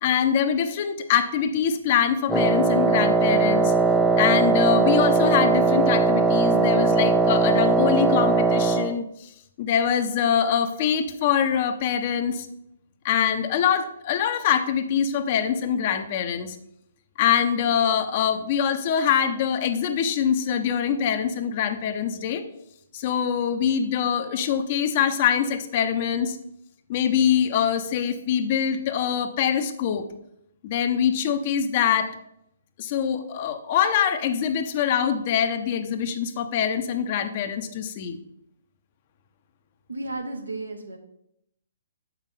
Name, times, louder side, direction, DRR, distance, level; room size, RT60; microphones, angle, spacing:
voice 1, 0.0-3.7 4.2-9.3 9.6-12.5 13.0-16.6 17.2-22.4 22.9-26.4 26.9-30.1 30.6-32.2 32.8-38.2, left 8 dB, 40° left, 9 dB, 0.7 m, -24 dB
Wind instrument woodwind instrument, 2.3-9.0, right 3 dB, ahead, 0.4 m, -20 dB
voice 2, 39.9-41.0, right 2 dB, 85° right, 4 dB, 1.1 m, -33 dB
7.1 x 5.7 x 3.9 m, 0.78 s
figure-of-eight pair, 130°, 0 cm